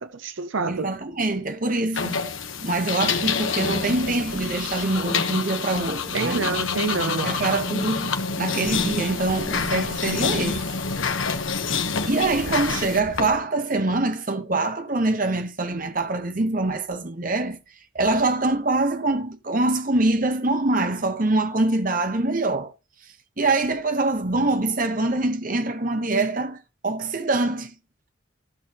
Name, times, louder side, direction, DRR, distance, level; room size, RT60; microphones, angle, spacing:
voice 1, 0.0-0.9 6.1-7.4, right 4 dB, 75° right, 0.7 m, -27 dB
voice 2, 0.7-2.3 2.6-6.6 7.2-10.6 12.1-17.6 17.9-22.7 23.4-26.6 26.8-27.7, right 2 dB, 45° right, 1.2 m, -24 dB
sound 1, 1.9-13.3, left 5 dB, 80° left, 1.3 m, -27 dB
15.5 x 6.3 x 3.0 m
head